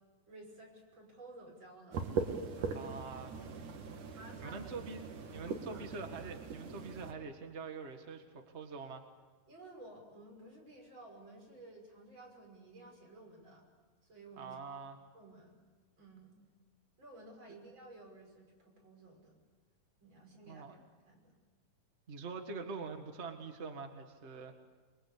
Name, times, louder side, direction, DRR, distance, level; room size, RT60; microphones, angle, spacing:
voice 1, 0.3-2.1 2.6-3.4 4.1-4.7 5.3-5.9 9.5-13.6 14.0-14.5 15.1-15.6 16.0-16.4 17.0-19.4 20.0-20.8 21.1-21.3, right 2 dB, 30° right, 0 dB, 6.3 m, -55 dB
sound 1, 1.9-7.1, right 5 dB, 65° right, 3.3 m, -40 dB
voice 2, 2.7-3.4 3.9-4.0 4.4-5.0 5.3-9.1 14.4-15.0 20.5-20.7 22.1-24.5, right 4 dB, 50° right, 5 dB, 0.8 m, -44 dB
28.0 x 22.5 x 8.4 m, 1.4 s
omnidirectional pair, 4.0 m